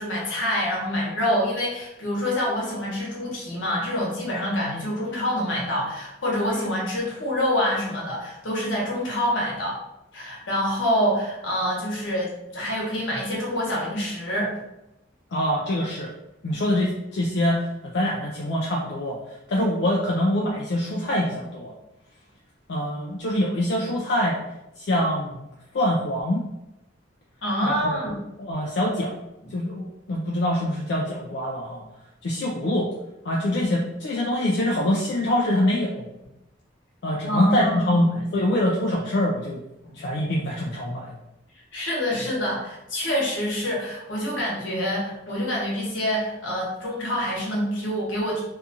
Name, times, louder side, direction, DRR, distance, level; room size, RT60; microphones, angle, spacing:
voice 1, 0.0-9.8 10.1-14.5 27.4-28.1 37.3-38.0 39.8-39.9 41.7-48.4, equal, 80° left, -4 dB, 1.0 m, -26 dB
voice 2, 15.3-16.1 16.4-21.7 22.7-24.4 24.8-25.5 25.7-26.4 27.6-29.2 29.5-31.8 32.2-32.9 33.2-36.1 37.0-39.6 39.9-41.2, left 1 dB, 60° left, -3 dB, 0.4 m, -24 dB
2.5 x 2.3 x 2.8 m, 0.91 s
head